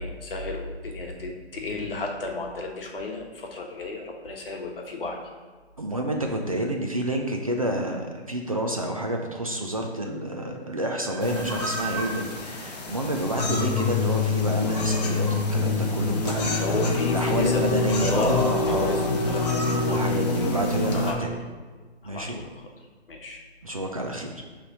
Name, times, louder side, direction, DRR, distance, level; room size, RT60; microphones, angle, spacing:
voice 1, 0.0-5.2 13.4-13.5 16.5-17.6 18.0-20.2 20.9-21.4 22.0-22.5 23.1-23.4, left 3 dB, 55° left, 1 dB, 1.3 m, -33 dB
voice 2, 5.8-16.8 17.1-19.1 19.8-21.3 22.0-22.4 23.6-24.4, right 1 dB, 35° right, 2 dB, 0.4 m, -29 dB
Train, 10.6-14.9, right 4 dB, 65° right, 0.8 m, -41 dB
sound 1, 11.2-21.1, left 3 dB, 40° left, 0.8 m, -26 dB
5.8 x 3.3 x 5.3 m, 1.4 s
hypercardioid pair, 165°, 34 cm